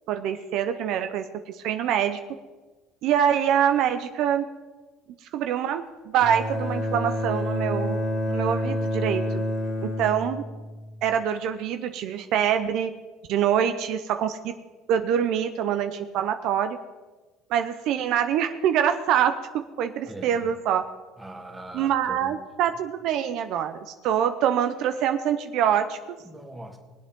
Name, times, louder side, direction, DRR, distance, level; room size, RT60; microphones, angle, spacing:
voice 1, 0.1-2.2 3.0-4.5 5.3-9.4 9.8-10.4 11.0-12.9 13.3-14.5 14.9-16.8 17.5-20.8 21.7-26.2, right 9 dB, 65° right, 8 dB, 0.6 m, -25 dB
Bowed string instrument, 6.2-11.2, left 1 dB, 55° left, 1.5 m, -28 dB
voice 2, 20.0-20.5 21.2-22.4 26.3-26.8, right 1 dB, 10° right, 3 dB, 1.8 m, -41 dB
21.0 x 8.3 x 3.7 m, 1.3 s
cardioid pair, 120°, 0 cm